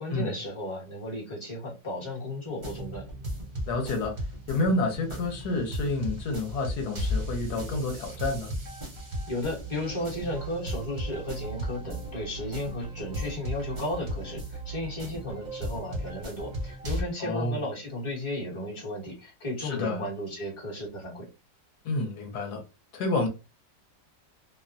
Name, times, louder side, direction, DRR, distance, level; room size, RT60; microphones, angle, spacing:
voice 1, 0.0-3.0 9.3-21.3, left 1 dB, 20° left, 0.8 m, -34 dB
sound 1, 2.5-17.0, equal, 45° right, 0.5 m, -36 dB
voice 2, 3.7-4.1 4.5-8.5 17.2-17.6 19.6-20.1 21.8-22.6 22.9-23.3, left 2 dB, 65° left, 1.2 m, -29 dB
sound 2, 9.6-15.2, right 6 dB, 85° left, 1.3 m, -41 dB
2.9 x 2.1 x 2.5 m
omnidirectional pair, 1.9 m